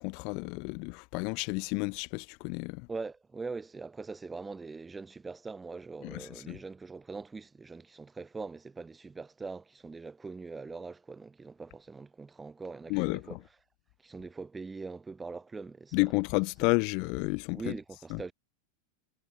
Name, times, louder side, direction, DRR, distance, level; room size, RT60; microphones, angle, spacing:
voice 1, 0.0-2.9 6.0-6.6 12.9-13.4 15.9-17.7 18.1-18.2, left 33 dB, 45° left, 0.5 m, -31 dB
voice 2, 2.9-13.4 14.0-16.0 17.5-18.3, right 4 dB, 10° right, 0.7 m, -42 dB
figure-of-eight pair, 90°, 0 cm